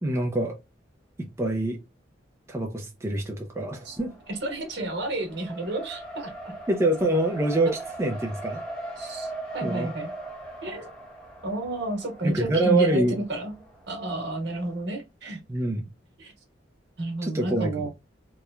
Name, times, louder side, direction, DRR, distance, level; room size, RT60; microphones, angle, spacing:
voice 1, 0.0-0.6 1.2-1.8 2.5-4.1 6.7-7.7 8.0-8.6 9.6-9.9 12.2-13.2 15.5-15.9 17.2-17.9, right 2 dB, 15° right, 0.4 m, -25 dB
Race car auto racing, 3.7-14.7, right 2 dB, 5° left, 0.8 m, -40 dB
voice 2, 4.3-6.3 9.0-10.1 10.6-10.9 11.4-13.6 13.9-15.4 16.2-16.3 17.0-17.9, right 1 dB, 65° right, 1.1 m, -31 dB
3.0 x 2.1 x 2.3 m
head